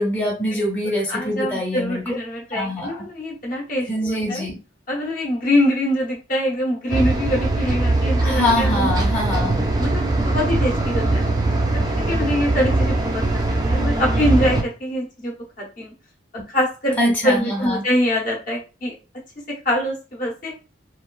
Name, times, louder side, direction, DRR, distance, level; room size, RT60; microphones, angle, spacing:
voice 1, 0.0-2.0 2.5-3.0 3.9-4.6 8.2-9.6 17.0-17.8, left 1 dB, 10° left, -4 dB, 0.7 m, -24 dB
voice 2, 0.5-4.4 4.9-8.9 9.8-11.3 11.7-13.2 13.5-15.9 16.5-18.9 19.5-20.6, equal, 45° left, -2 dB, 0.8 m, -24 dB
sound 1, 6.9-14.6, right 2 dB, 20° right, 0.3 m, -21 dB
3.0 x 2.3 x 2.3 m, 0.32 s
head